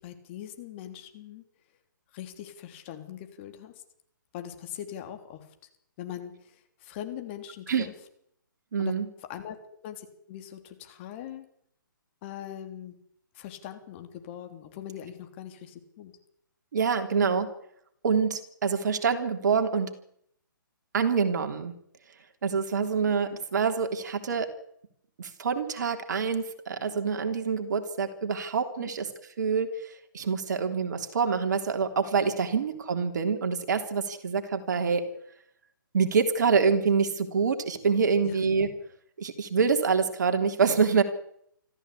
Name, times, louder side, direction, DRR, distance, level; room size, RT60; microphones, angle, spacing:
voice 1, 0.0-1.4 2.1-3.7 4.3-5.5 6.0-7.9 8.8-8.9 9.2-9.6 9.8-11.5 12.2-13.0 13.3-16.1 28.8-28.9 38.2-38.4, left 10 dB, 35° left, 6 dB, 3.3 m, -41 dB
voice 2, 8.7-9.1 16.7-17.5 18.0-19.9 20.9-21.7 22.4-24.5 25.2-29.1 29.4-35.0 35.9-38.7 39.2-41.0, right 5 dB, 55° right, 7 dB, 3.3 m, -26 dB
25.5 x 14.5 x 8.5 m, 0.70 s
figure-of-eight pair, 135°, 11 cm